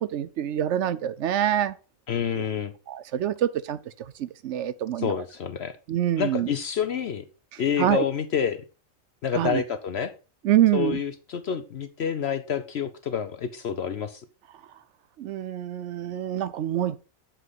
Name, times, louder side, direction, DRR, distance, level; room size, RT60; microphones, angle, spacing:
voice 1, 0.1-1.7 2.9-3.8 4.2-5.1 5.9-6.5 7.8-8.0 9.3-9.6 10.4-11.0 15.2-17.0, right 11 dB, 65° right, 0.8 m, -25 dB
voice 2, 2.1-2.7 5.0-5.8 6.2-7.2 7.6-8.6 9.2-10.1 10.7-14.2, left 8 dB, 55° left, 0.8 m, -28 dB
8.0 x 7.7 x 4.0 m
omnidirectional pair, 1.4 m